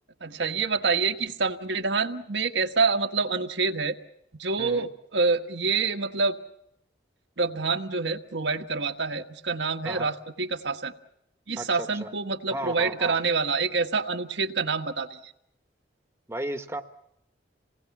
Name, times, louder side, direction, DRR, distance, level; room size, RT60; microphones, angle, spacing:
voice 1, 0.2-4.0 4.4-6.4 7.4-10.9 11.5-15.3, right 4 dB, 80° right, 5 dB, 1.4 m, -27 dB
voice 2, 11.6-12.1 12.5-13.2 16.3-16.8, right 1 dB, 15° right, 6 dB, 1.2 m, -34 dB
27.5 x 19.5 x 7.2 m, 0.79 s
head